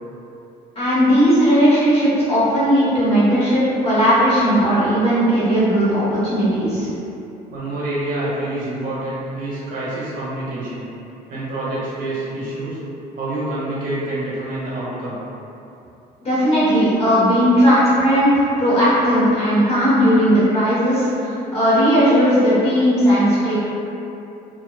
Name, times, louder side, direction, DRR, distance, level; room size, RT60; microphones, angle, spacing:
voice 1, 0.7-6.9 16.2-23.7, equal, 35° left, -10 dB, 1.1 m, -16 dB
voice 2, 7.5-10.9 11.3-12.8 13.1-15.2, right 1 dB, 55° right, -8 dB, 0.9 m, -27 dB
2.5 x 2.1 x 2.3 m, 2.8 s
cardioid pair, 110°, 17 cm